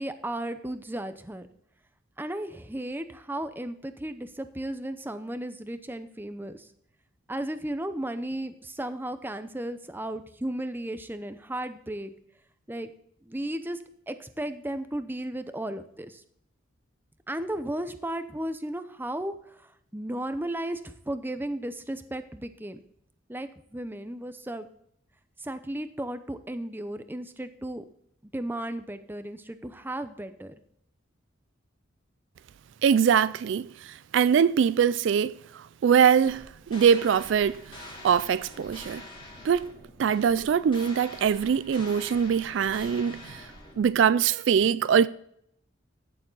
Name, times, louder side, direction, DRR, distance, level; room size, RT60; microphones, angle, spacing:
voice 1, 0.0-1.5 2.2-6.7 7.3-12.1 12.7-12.9 13.3-13.8 14.1-16.2 17.3-22.8 23.3-24.7 25.4-27.8 28.3-30.5, right 1 dB, 10° right, 0.7 m, -34 dB
voice 2, 32.8-39.0 39.4-39.7 40.0-43.5 43.8-45.1, right 7 dB, 60° right, 0.3 m, -23 dB
sound 1, 36.2-44.1, left 2 dB, 25° left, 2.4 m, -46 dB
14.5 x 7.0 x 3.9 m
head